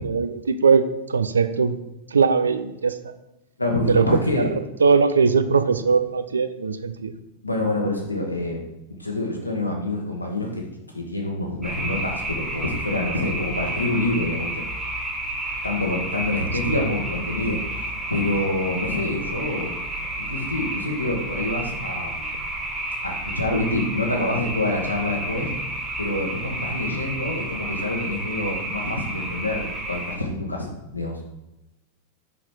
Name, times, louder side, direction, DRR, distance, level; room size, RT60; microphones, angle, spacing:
voice 1, 0.0-1.8 2.1-3.1 3.9-4.5 4.8-7.1 16.7-16.9, right 5 dB, 70° right, 11 dB, 0.5 m, -20 dB
voice 2, 3.6-4.5 7.4-8.6 8.9-10.7 10.9-14.6 15.6-17.6 18.1-19.8 20.2-22.3 23.0-25.5 26.0-31.2, left 2 dB, 85° left, 1 dB, 1.5 m, -26 dB
sound 1, 11.6-30.2, right 1 dB, 10° right, 1.7 m, -31 dB
5.9 x 5.7 x 4.8 m, 0.92 s
figure-of-eight pair, 90°, 0 cm